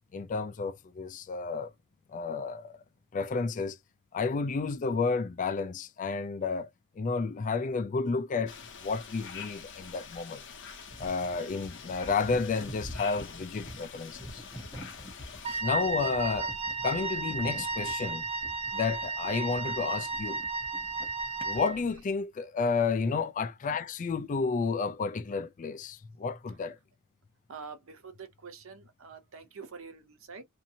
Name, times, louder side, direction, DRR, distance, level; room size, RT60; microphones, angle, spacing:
voice 1, 0.1-1.7 2.1-2.8 3.1-3.8 4.1-6.7 7.0-8.6 8.8-10.4 11.0-14.4 15.6-16.5 16.8-18.3 18.7-20.4 21.4-26.8, left 4 dB, 35° left, 0.4 m, -31 dB
sound 1, 8.5-15.6, left 6 dB, 60° left, 0.7 m, -46 dB
sound 2, 10.9-22.0, equal, 10° left, 0.8 m, -47 dB
Wind instrument woodwind instrument, 15.4-21.8, right 3 dB, 30° right, 0.4 m, -34 dB
voice 2, 27.5-30.4, right 5 dB, 65° right, 0.7 m, -46 dB
2.7 x 2.5 x 2.7 m
head